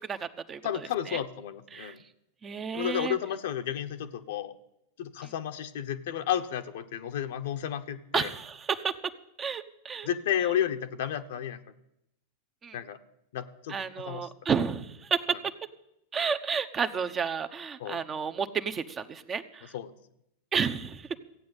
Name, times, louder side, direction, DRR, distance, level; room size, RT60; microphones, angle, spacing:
voice 1, 0.0-1.2 1.7-1.9 2.4-3.2 5.2-5.3 8.1-9.1 9.4-10.1 12.6-12.8 13.7-15.4 16.1-19.7 20.5-21.2, right 6 dB, 25° right, 9 dB, 1.0 m, -31 dB
voice 2, 0.6-2.0 2.7-4.6 5.0-8.3 10.0-11.6 12.7-13.0 13.3-13.8 14.1-14.3 17.8-18.0 19.7-19.9, left 10 dB, 70° left, 8 dB, 1.1 m, -32 dB
15.0 x 8.7 x 8.1 m, 0.84 s
hypercardioid pair, 100°, 0 cm